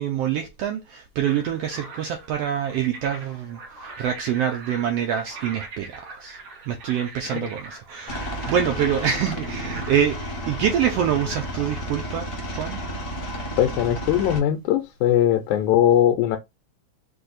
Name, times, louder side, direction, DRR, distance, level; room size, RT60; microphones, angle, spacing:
voice 1, 0.0-6.4 6.7-12.8, right 9 dB, 80° right, 1.4 m, -26 dB
sound 1, 1.2-10.0, right 3 dB, 55° right, 1.6 m, -42 dB
Aircraft, 8.1-14.4, equal, 35° left, 0.9 m, -32 dB
voice 2, 13.6-16.4, left 11 dB, 90° left, 2.0 m, -20 dB
4.9 x 2.6 x 4.0 m
omnidirectional pair, 3.4 m